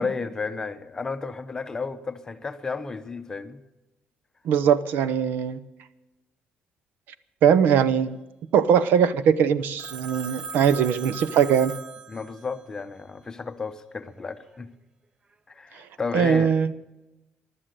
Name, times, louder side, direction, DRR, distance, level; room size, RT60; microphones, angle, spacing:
voice 1, 0.0-3.6 12.1-14.7 15.5-16.5, left 4 dB, 20° left, 0.7 m, -32 dB
voice 2, 4.4-5.6 7.4-8.2 8.5-11.7 16.1-16.7, right 8 dB, 70° right, 0.7 m, -21 dB
Telephone, 9.8-12.6, right 4 dB, 25° right, 0.4 m, -38 dB
15.0 x 11.5 x 6.7 m
cardioid pair, 170°, 3 cm